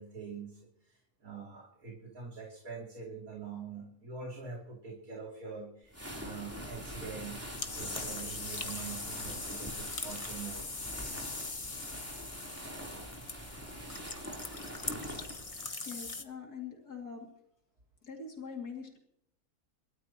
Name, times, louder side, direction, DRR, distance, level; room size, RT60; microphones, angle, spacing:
voice 1, 0.0-10.7, right 5 dB, 70° right, -1 dB, 3.3 m, -45 dB
sound 1, 5.9-15.7, equal, 10° right, 3.5 m, -44 dB
sound 2, 7.5-16.2, left 3 dB, 25° left, 1.1 m, -41 dB
voice 2, 15.9-17.3 18.0-19.0, left 5 dB, 90° left, 1 dB, 3.1 m, -43 dB
28.5 x 13.5 x 3.0 m, 0.71 s
omnidirectional pair, 1.6 m